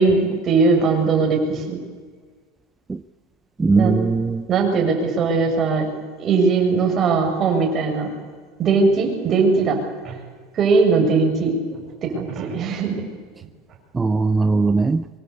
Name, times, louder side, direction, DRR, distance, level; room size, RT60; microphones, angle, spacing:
voice 1, 0.0-1.8 3.7-4.0 4.5-5.9 6.2-8.1 8.6-10.2 10.5-13.1, right 4 dB, 35° right, 2 dB, 7.0 m, -20 dB
voice 2, 3.6-4.5 13.9-15.1, right 3 dB, 15° right, 12 dB, 0.7 m, -19 dB
25.0 x 23.0 x 8.4 m, 1.5 s
supercardioid pair, 120°, 0 cm